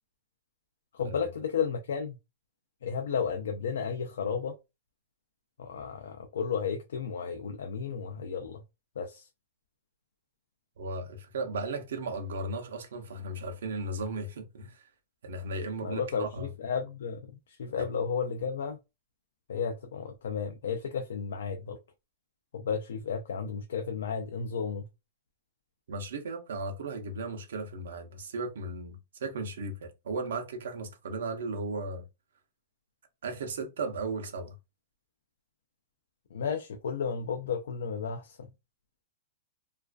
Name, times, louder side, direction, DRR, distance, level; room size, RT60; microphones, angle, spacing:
voice 1, 0.9-2.2 2.8-4.5 5.6-8.6 9.0-9.3 15.8-18.8 19.5-21.8 22.5-24.9 36.3-38.5, left 6 dB, 85° left, 0.4 m, -33 dB
voice 2, 10.8-14.8 15.2-16.5 17.8-17.9 25.9-32.0 33.2-34.5, right 2 dB, 85° right, 0.6 m, -36 dB
2.3 x 2.3 x 2.3 m
supercardioid pair, 165°, 0 cm